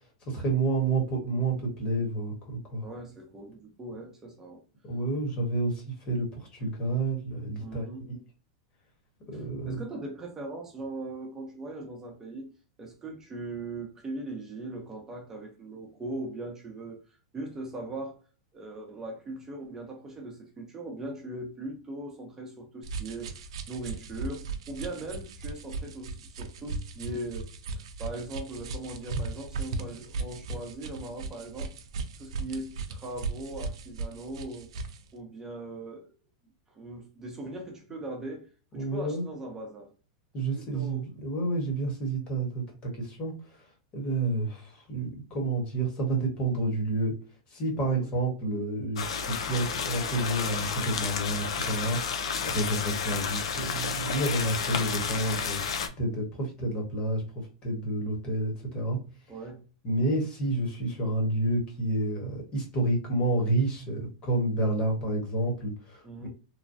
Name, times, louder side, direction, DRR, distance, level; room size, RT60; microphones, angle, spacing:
voice 1, 0.3-2.8 4.8-8.2 9.3-9.8 38.8-39.2 40.3-43.6 43.9-47.1 47.5-59.0 59.8-66.0, right 2 dB, 35° left, 1.3 m, -29 dB
voice 2, 2.8-4.6 7.6-8.1 9.3-12.5 12.8-17.0 17.3-18.2 18.5-23.4 23.7-31.8 32.2-34.7 35.1-36.1 36.7-39.9 40.5-41.1 41.4-41.5 47.8-48.1 59.3-59.6 66.0-66.3, right 2 dB, 15° right, 0.7 m, -40 dB
sound 1, 22.8-35.0, right 3 dB, 80° right, 0.5 m, -37 dB
sound 2, 49.0-55.9, left 6 dB, 90° left, 0.4 m, -31 dB
3.1 x 2.2 x 2.6 m
supercardioid pair, 135°, 3 cm